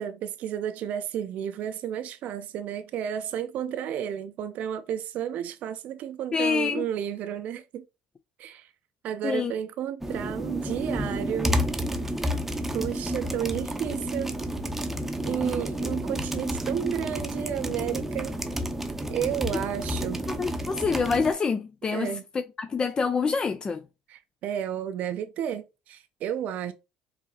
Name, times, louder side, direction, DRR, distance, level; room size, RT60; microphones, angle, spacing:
voice 1, 0.0-7.8 8.4-8.7 9.0-11.6 12.7-14.3 15.2-18.3 19.1-20.2 21.9-22.2 24.1-26.7, right 9 dB, 60° right, 0.5 m, -32 dB
voice 2, 6.3-6.8 9.2-9.5 20.3-23.8, left 5 dB, 30° left, 0.4 m, -27 dB
sound 1, 10.0-21.3, equal, 10° right, 0.7 m, -30 dB
4.7 x 2.8 x 2.8 m
supercardioid pair, 80°, 3 cm